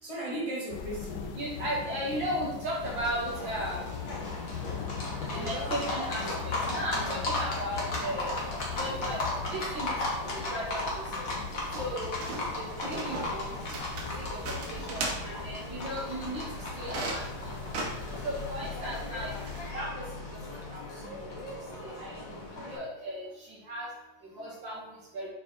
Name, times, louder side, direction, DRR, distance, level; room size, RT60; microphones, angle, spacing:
voice 1, 0.0-1.3 24.3-24.5, right 1 dB, 15° left, -7 dB, 1.5 m, -38 dB
sound 1, 0.7-19.7, left 8 dB, 65° left, 1.2 m, -42 dB
voice 2, 1.4-3.8 5.3-8.4 8.7-9.2 9.5-10.0 10.5-11.2 11.8-12.1 12.6-13.5 14.3-16.4 16.8-17.2 18.2-19.3 19.7-19.9 20.7-20.8 22.0-22.2 22.6-23.3 23.7-23.9 24.4-24.8 25.1-25.3, equal, 60° right, -5 dB, 2.9 m, -35 dB
Livestock farm animals working animals, 2.8-22.8, left 2 dB, 45° left, 1.8 m, -36 dB
sound 2, 11.5-19.6, right 2 dB, 90° right, 2.1 m, -40 dB
6.5 x 4.7 x 4.5 m, 0.93 s
omnidirectional pair, 2.3 m